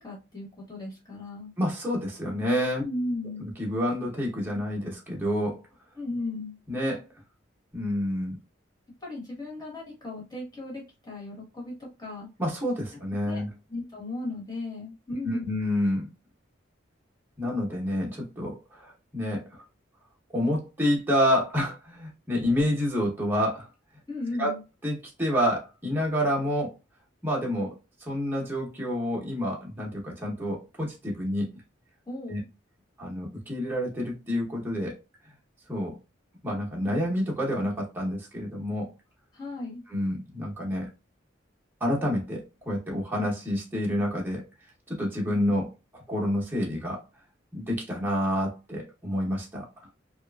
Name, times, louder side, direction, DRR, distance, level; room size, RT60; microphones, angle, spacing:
voice 1, 0.0-1.5 2.8-3.5 6.0-6.6 9.0-12.3 13.2-13.4 13.7-15.6 24.1-24.6 32.1-32.4 39.3-39.8, left 2 dB, 20° left, 1.1 m, -36 dB
voice 2, 1.6-2.8 3.4-5.6 6.7-7.1 7.7-8.4 12.4-13.5 15.2-16.1 17.4-19.6 20.3-23.7 24.4-24.5 24.8-26.7 27.2-31.5 32.3-32.4 33.0-35.0 35.7-36.0 36.4-38.9 39.9-40.9 41.8-44.4 44.9-45.7 45.9-47.0 47.5-49.7, equal, 10° right, 0.7 m, -28 dB
2.8 x 2.3 x 2.2 m
head